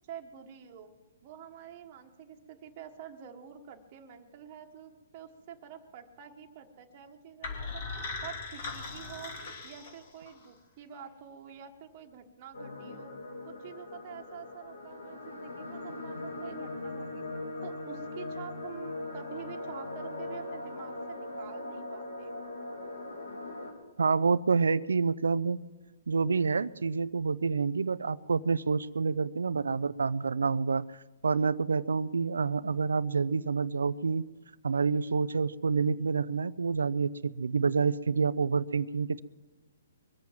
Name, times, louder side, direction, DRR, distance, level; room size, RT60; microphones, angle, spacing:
voice 1, 0.1-0.9 1.2-7.8 8.2-9.3 9.6-13.1 13.5-17.3 17.6-22.4, right 8 dB, 35° right, 2 dB, 1.4 m, -47 dB
sound 1, 7.4-10.5, left 4 dB, 50° left, 3.0 m, -39 dB
sound 2, 12.5-23.7, left 2 dB, 90° left, 2.9 m, -40 dB
voice 2, 24.0-25.6 26.1-31.0 31.2-34.2 34.6-39.2, right 5 dB, 85° right, 17 dB, 0.4 m, -28 dB
22.5 x 7.7 x 7.4 m, 1.2 s
hypercardioid pair, 145°, 0 cm